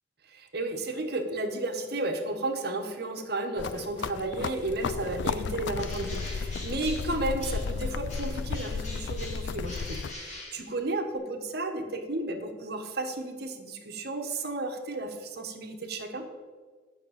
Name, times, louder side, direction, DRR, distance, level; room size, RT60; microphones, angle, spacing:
voice 1, 0.2-16.3, right 2 dB, 55° right, 4 dB, 1.2 m, -33 dB
sound 1, 3.6-10.1, left 5 dB, 70° left, 0.4 m, -34 dB
Bird, 5.7-7.8 8.1-11.2, left 2 dB, 40° left, 3.5 m, -44 dB
11.0 x 6.0 x 8.8 m, 1.5 s
head